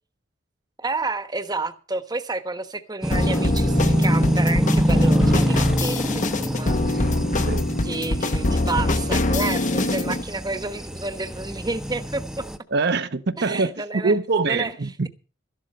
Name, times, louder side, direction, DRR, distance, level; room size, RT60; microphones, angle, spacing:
voice 1, 0.8-7.0 7.8-12.5 13.4-14.2 14.5-14.7, right 3 dB, 20° right, 1.2 m, -30 dB
sound 1, 3.0-12.6, equal, 5° right, 0.9 m, -24 dB
sound 2, 3.1-10.2, left 2 dB, 45° left, 1.0 m, -24 dB
voice 2, 12.7-15.1, right 3 dB, 60° right, 0.8 m, -24 dB
13.0 x 12.0 x 5.5 m
head